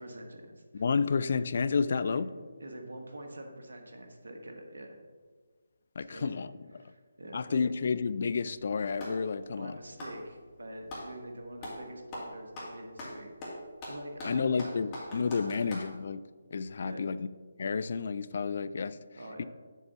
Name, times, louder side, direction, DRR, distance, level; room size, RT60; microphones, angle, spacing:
voice 1, 0.0-0.8 1.9-2.2 2.6-5.0 6.1-6.5 6.8-7.7 9.6-13.3 13.9-14.8 15.4-15.6 16.8-17.1 19.2-19.4, right 1 dB, 70° right, 4 dB, 1.4 m, -45 dB
voice 2, 0.7-2.3 6.0-6.5 7.3-9.8 14.2-16.2 16.5-17.3 17.6-19.0 19.4-19.5, left 5 dB, 50° left, 15 dB, 0.3 m, -30 dB
Clapping, 8.3-9.3 9.9-11.1 11.6-11.8 12.1-15.9, left 1 dB, 20° left, 2.2 m, -42 dB
7.4 x 4.0 x 6.7 m, 1.4 s
figure-of-eight pair, 150°, 0 cm